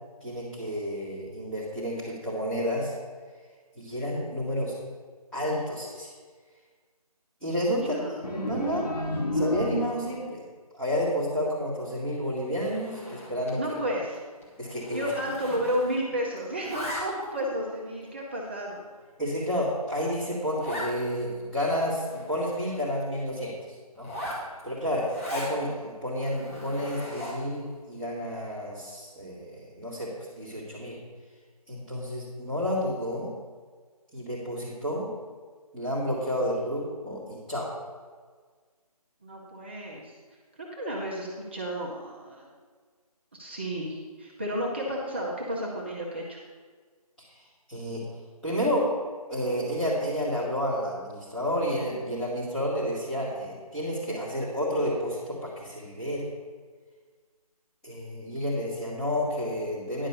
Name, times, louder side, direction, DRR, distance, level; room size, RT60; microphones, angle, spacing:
voice 1, 0.2-2.9 3.8-4.7 5.3-6.1 7.4-8.0 8.3-8.9 9.3-10.4 10.7-13.6 14.6-15.1 19.2-23.5 24.0-24.1 24.6-30.1 30.4-31.0 31.7-33.3 34.1-35.1 35.7-37.7 47.2-47.3 47.7-48.1 48.4-48.9 49.3-56.3 57.8-60.1, equal, 5° left, -13 dB, 1.8 m, -30 dB
voice 2, 7.9-8.2 13.5-14.2 14.9-18.8 39.2-40.1 40.8-42.5 43.3-46.4, equal, 15° right, -3 dB, 0.8 m, -32 dB
sound 1, 8.2-10.3, left 1 dB, 75° left, 1.7 m, -30 dB
Zipper (clothing), 12.6-13.6 13.9-14.2 14.4-16.1 16.4-17.4 18.0-18.1 18.7-18.8 19.2-19.3 19.5-19.6 19.9-20.0 20.6-20.9 21.4-21.5 21.7-23.0 23.9-25.6 26.1-27.5, equal, 20° left, 1.8 m, -39 dB
10.5 x 5.2 x 6.8 m, 1.6 s
figure-of-eight pair, 165°, 20 cm